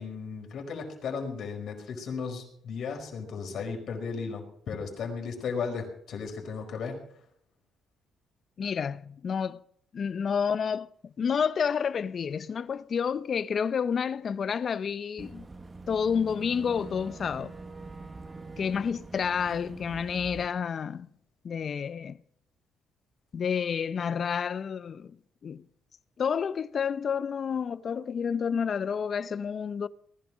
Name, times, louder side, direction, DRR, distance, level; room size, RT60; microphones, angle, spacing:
voice 1, 0.0-7.0, left 5 dB, 65° left, 5.0 m, -35 dB
voice 2, 8.6-9.6 9.9-10.9 11.2-15.5 15.9-17.6 18.6-21.1 21.4-22.2 23.3-25.2 25.4-25.6 26.2-29.9, left 7 dB, 50° left, 0.6 m, -29 dB
Boat Water vehicle / Engine, 15.2-20.5, right 3 dB, 25° right, 1.1 m, -44 dB
19.5 x 12.0 x 6.2 m
cardioid pair, 95°, 0 cm